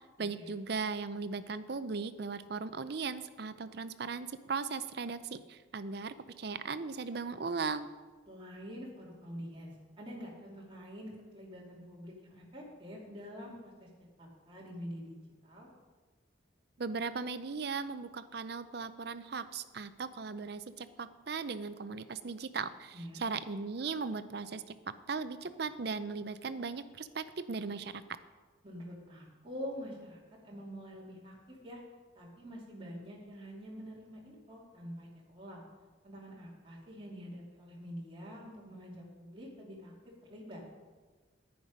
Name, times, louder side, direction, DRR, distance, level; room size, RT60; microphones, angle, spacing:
voice 1, 0.2-7.9 16.8-28.0, right 4 dB, 55° right, 13 dB, 0.5 m, -38 dB
voice 2, 8.3-13.9 14.2-15.7 22.9-23.3 28.6-31.8 32.1-35.6 36.0-39.9 40.3-40.6, equal, 25° right, -4 dB, 2.8 m, -46 dB
10.5 x 10.0 x 5.2 m, 1.3 s
head